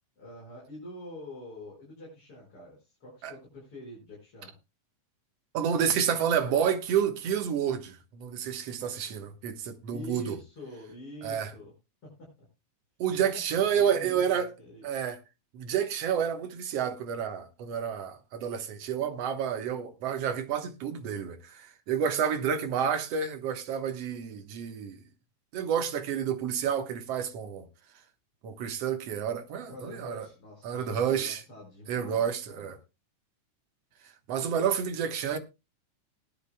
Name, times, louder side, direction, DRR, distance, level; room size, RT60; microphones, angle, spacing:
voice 1, 0.2-4.5 9.9-11.7 12.0-12.3 13.5-14.9 29.7-32.7, equal, 40° left, 6.1 m, -45 dB
voice 2, 5.5-10.4 11.2-11.5 13.0-14.5 14.8-15.2 15.5-25.0 25.5-27.7 28.4-30.3 30.6-31.4 31.9-32.8 34.3-35.4, right 8 dB, 60° right, 2.0 m, -29 dB
20.0 x 10.5 x 2.2 m
omnidirectional pair, 3.8 m